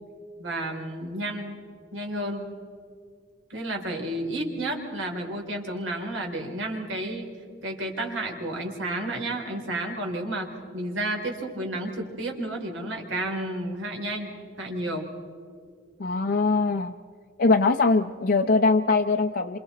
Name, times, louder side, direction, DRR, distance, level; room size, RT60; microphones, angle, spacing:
voice 1, 0.4-1.5 1.9-2.5 3.5-15.1, right 1 dB, 85° right, 2 dB, 3.5 m, -31 dB
voice 2, 16.0-16.9 17.4-19.6, left 3 dB, 55° left, 5 dB, 0.6 m, -22 dB
27.5 x 27.0 x 4.2 m, 2.3 s
head